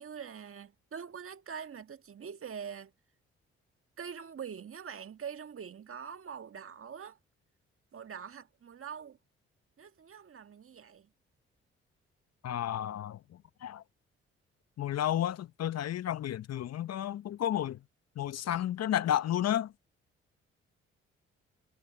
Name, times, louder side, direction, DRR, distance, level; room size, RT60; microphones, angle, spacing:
voice 1, 0.0-2.9 4.0-7.2 7.9-9.2 9.8-11.1, right 7 dB, 50° right, 1.6 m, -44 dB
voice 2, 12.4-13.8 14.8-17.8 18.2-19.7, left 11 dB, 60° left, 0.9 m, -32 dB
hypercardioid pair, 50°, 29 cm